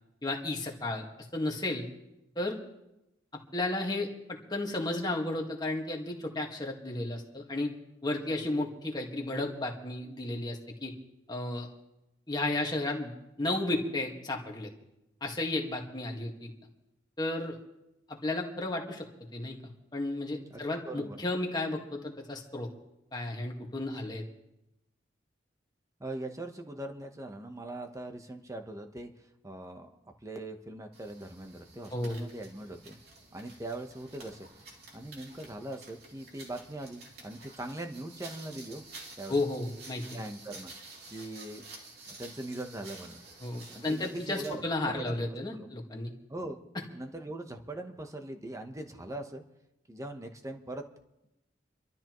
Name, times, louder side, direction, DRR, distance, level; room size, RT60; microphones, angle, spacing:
voice 1, 0.2-1.0 1.3-1.9 2.4-2.6 3.5-4.1 4.5-7.7 8.0-10.9 11.3-11.7 12.3-14.7 15.2-16.5 17.2-17.6 18.1-19.1 19.3-19.6 19.9-22.7 23.1-24.2 31.9-32.2 39.3-40.2 43.4-46.1 46.8-46.9, left 2 dB, 20° left, 1 dB, 1.7 m, -33 dB
voice 2, 20.5-21.2 26.0-33.0 33.3-34.5 34.9-38.8 39.2-39.4 40.1-40.7 41.1-41.7 42.1-43.2 43.7-45.1 45.5-45.7 46.3-46.6 46.9-49.4 49.9-50.8, right 1 dB, 15° right, 5 dB, 1.0 m, -41 dB
sound 1, 30.9-44.6, right 3 dB, 55° right, 3.1 m, -51 dB
28.0 x 12.5 x 3.1 m, 0.90 s
head